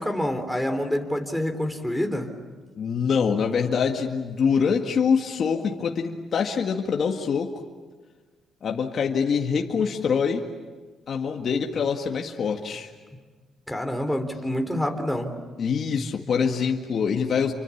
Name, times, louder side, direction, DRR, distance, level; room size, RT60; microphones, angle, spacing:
voice 1, 0.0-2.3 13.7-15.4, left 1 dB, ahead, 4 dB, 3.5 m, -27 dB
voice 2, 2.8-7.5 8.6-10.4 11.1-12.9 15.6-17.5, left 6 dB, 55° left, 2 dB, 1.8 m, -24 dB
29.0 x 24.5 x 7.3 m, 1.4 s
cardioid pair, 90°, 0 cm